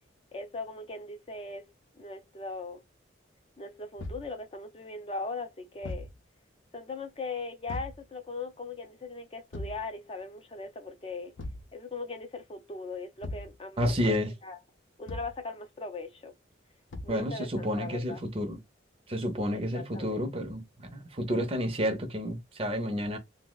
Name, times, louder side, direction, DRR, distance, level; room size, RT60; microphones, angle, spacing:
voice 1, 0.3-1.6 2.0-2.8 3.6-6.1 6.7-11.3 11.7-14.6 15.0-16.3 17.0-18.2 19.5-20.3, left 3 dB, 30° left, 0.4 m, -39 dB
Thump thud, 4.0-4.3 5.8-6.2 7.7-8.0 9.5-9.9 11.4-11.7 13.2-13.6 15.1-15.4 16.9-17.2, left 1 dB, 85° left, 0.6 m, -38 dB
voice 2, 13.8-14.3 17.1-18.6 19.1-23.2, equal, 30° right, 0.6 m, -30 dB
2.6 x 2.1 x 3.8 m
head